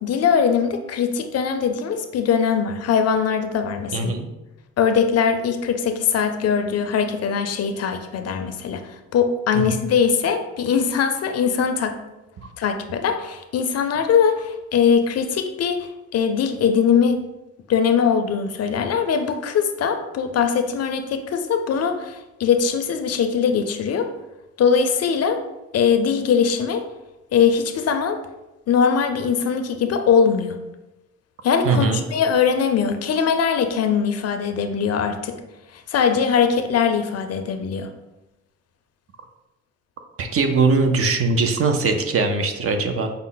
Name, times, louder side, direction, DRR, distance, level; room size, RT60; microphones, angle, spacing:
voice 1, 0.0-4.1 4.8-12.0 12.6-17.2 17.7-24.1 24.6-25.4 25.7-26.8 27.3-28.2 28.7-30.6 31.4-35.3 35.7-37.9, left 6 dB, 55° left, 7 dB, 0.5 m, -21 dB
voice 2, 3.9-4.3 9.5-9.6 31.6-32.0 40.2-43.1, right 3 dB, 50° right, 5 dB, 0.6 m, -20 dB
5.3 x 2.0 x 3.8 m, 0.98 s
cardioid pair, 90°, 30 cm